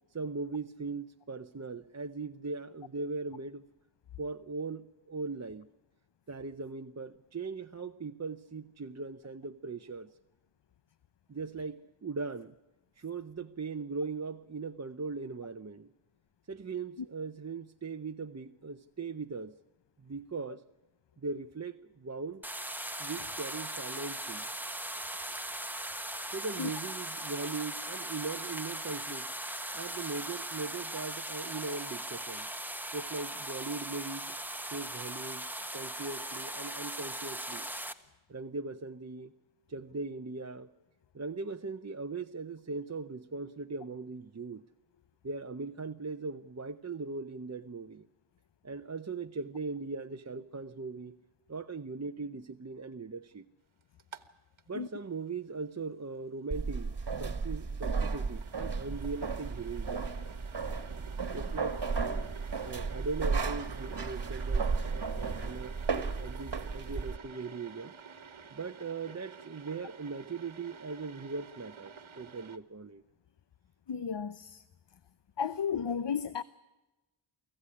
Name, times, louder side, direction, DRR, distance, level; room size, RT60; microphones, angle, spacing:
voice 1, 0.1-3.6 4.2-5.7 6.3-10.1 11.3-12.6 13.0-15.9 16.5-19.6 20.0-20.6 21.2-22.4 23.0-24.5 25.2-25.4 26.3-29.3 29.7-32.5 32.9-34.3 34.6-35.5 35.7-37.7 38.3-39.3 39.7-40.7 41.1-44.6 45.2-48.1 48.6-51.2 51.5-53.5 54.7-60.1 61.3-61.8 62.7-67.9 68.5-73.0, right 4 dB, 35° right, 0.8 m, -39 dB
sound 1, 22.4-37.9, right 1 dB, 5° right, 1.4 m, -39 dB
sound 2, 54.0-54.3 54.6-54.7 57.3-72.6, right 6 dB, 80° right, 1.4 m, -51 dB
sound 3, 56.5-67.2, right 4 dB, 60° right, 1.6 m, -34 dB
voice 2, 73.9-74.6 75.4-76.4, left 7 dB, 65° left, 0.8 m, -33 dB
24.5 x 15.5 x 9.8 m
wide cardioid pair, 70°, 47 cm